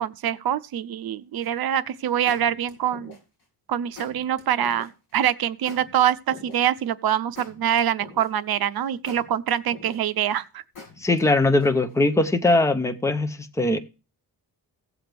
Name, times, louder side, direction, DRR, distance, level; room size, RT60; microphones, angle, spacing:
voice 1, 0.0-3.2 3.7-10.6, right 10 dB, 65° right, 0.7 m, -25 dB
sound 1, 1.4-1.7 2.3-3.4 4.0-4.9 5.7-6.8 7.4-8.5 9.1-10.2 10.8-11.9, left 3 dB, 65° left, 7.3 m, -44 dB
voice 2, 11.0-13.8, left 2 dB, 5° left, 0.7 m, -21 dB
16.0 x 7.7 x 3.4 m
wide cardioid pair, 160°, 40 cm